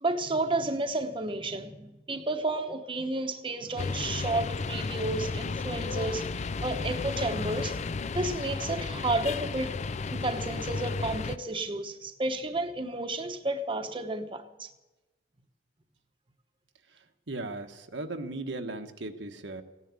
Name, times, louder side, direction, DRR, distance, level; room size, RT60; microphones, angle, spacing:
voice 1, 0.0-7.8 8.1-9.8 10.1-14.7, right 2 dB, 30° right, 1.0 m, -32 dB
sound 1, 3.8-11.4, left 4 dB, 40° left, 0.4 m, -33 dB
voice 2, 17.3-19.6, right 2 dB, 80° right, 1.3 m, -37 dB
16.0 x 10.0 x 8.3 m
head